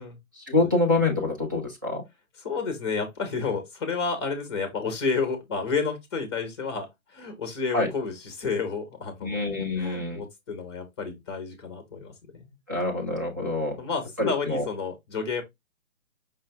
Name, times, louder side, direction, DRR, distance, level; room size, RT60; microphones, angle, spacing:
voice 1, 0.4-2.0 7.7-7.9 9.2-10.2 12.7-13.8 14.2-14.7, left 2 dB, 15° right, 0.5 m, -26 dB
voice 2, 2.4-9.4 9.8-12.5 13.8-15.4, left 5 dB, 20° left, 0.8 m, -30 dB
5.3 x 2.6 x 3.3 m
figure-of-eight pair, 140°, 42 cm